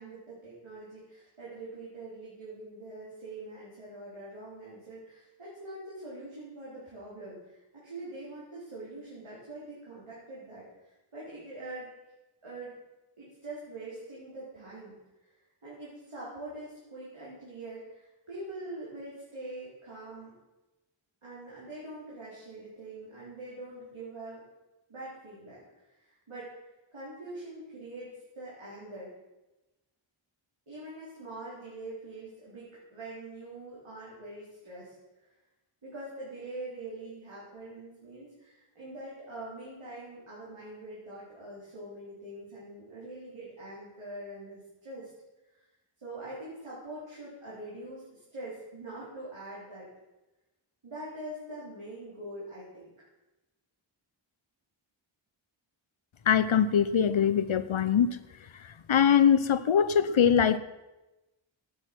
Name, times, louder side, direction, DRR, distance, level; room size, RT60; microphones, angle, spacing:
voice 1, 0.0-10.6 11.1-11.9 12.4-12.8 13.2-15.0 15.3-15.4 15.6-20.3 21.2-24.4 24.9-25.6 25.9-26.5 26.9-29.1 30.7-35.3 35.8-45.1 45.5-45.7 46.0-49.9 50.8-52.9, right 2 dB, 85° right, -8 dB, 4.3 m, -44 dB
voice 2, 56.3-58.2 58.9-60.6, left 8 dB, 70° left, 14 dB, 0.8 m, -22 dB
12.0 x 8.8 x 6.2 m, 1.0 s
wide cardioid pair, 65°, 49 cm